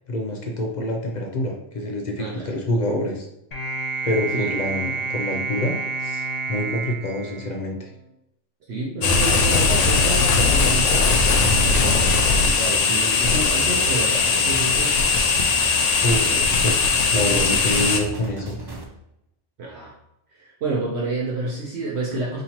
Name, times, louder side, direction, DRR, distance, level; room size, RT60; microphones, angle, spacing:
voice 1, 0.1-3.3 4.0-7.9 16.0-16.3 16.6-18.6, left 1 dB, 55° left, 1 dB, 0.5 m, -26 dB
voice 2, 2.2-2.5 4.3-4.5 8.7-11.2 11.6-12.2 12.4-15.1 16.1-16.4 19.6-20.0 20.3-22.4, right 2 dB, 65° right, -3 dB, 0.9 m, -29 dB
sound 1, 3.5-8.0, right 4 dB, 35° left, 1.1 m, -29 dB
sound 2, 9.0-18.0, left 4 dB, 85° left, 0.9 m, -19 dB
sound 3, 11.8-18.8, right 3 dB, 40° right, 0.3 m, -36 dB
4.2 x 2.8 x 2.8 m, 0.83 s
omnidirectional pair, 1.2 m